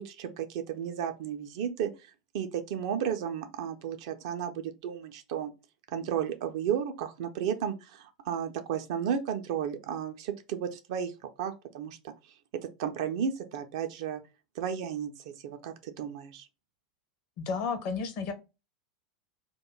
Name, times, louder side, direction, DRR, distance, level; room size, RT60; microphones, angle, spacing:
voice 1, 0.0-1.9 2.3-5.5 5.9-11.1 11.4-12.1 12.8-14.2 14.6-15.1 15.4-16.4, right 8 dB, 50° right, 0.4 m, -33 dB
voice 2, 17.4-18.3, left 5 dB, 45° left, 0.6 m, -32 dB
2.2 x 2.2 x 3.0 m
figure-of-eight pair, 85°, 4 cm